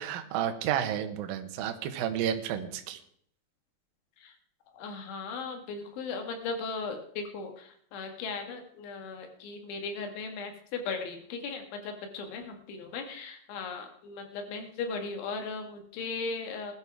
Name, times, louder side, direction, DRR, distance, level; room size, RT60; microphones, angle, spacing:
voice 1, 0.0-3.0, right 10 dB, 70° right, 6 dB, 2.4 m, -31 dB
voice 2, 4.7-16.7, left 4 dB, 90° left, 4 dB, 4.1 m, -37 dB
20.0 x 12.0 x 3.5 m, 0.63 s
omnidirectional pair, 5.2 m